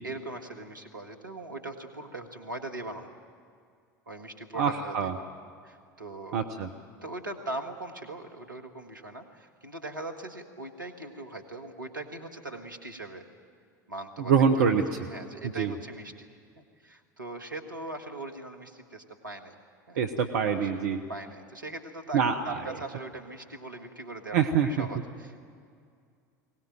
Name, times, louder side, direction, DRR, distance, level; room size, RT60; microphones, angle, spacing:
voice 1, 0.0-3.1 4.1-5.1 5.6-6.4 7.0-13.2 13.9-16.3 16.8-19.5 19.9-20.0 20.5-20.7 21.1-25.4, right 2 dB, 80° right, 5 dB, 1.7 m, -40 dB
voice 2, 4.6-5.2 6.3-6.7 14.2-14.8 15.6-15.7 20.0-21.0 22.1-22.7 24.3-24.9, right 6 dB, 60° right, 5 dB, 1.0 m, -25 dB
22.0 x 18.0 x 9.2 m, 2.2 s
figure-of-eight pair, 75°, 10 cm